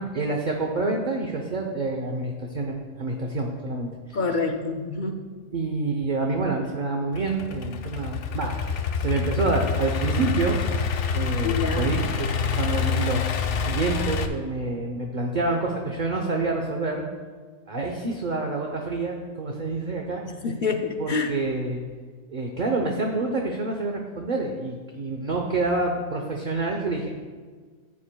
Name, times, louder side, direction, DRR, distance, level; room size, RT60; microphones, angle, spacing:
voice 1, 0.0-4.2 5.5-8.6 9.0-10.6 11.1-13.3 13.6-17.1 17.7-20.2 21.0-21.8 22.3-27.1, right 3 dB, 40° right, 2 dB, 0.8 m, -27 dB
voice 2, 4.1-5.2 11.4-11.9 20.4-21.3, left 4 dB, 50° left, 4 dB, 0.6 m, -27 dB
Idling / Accelerating revving vroom, 7.1-14.3, left 5 dB, 65° left, 1.0 m, -27 dB
14.0 x 10.0 x 2.2 m, 1.5 s
omnidirectional pair, 1.4 m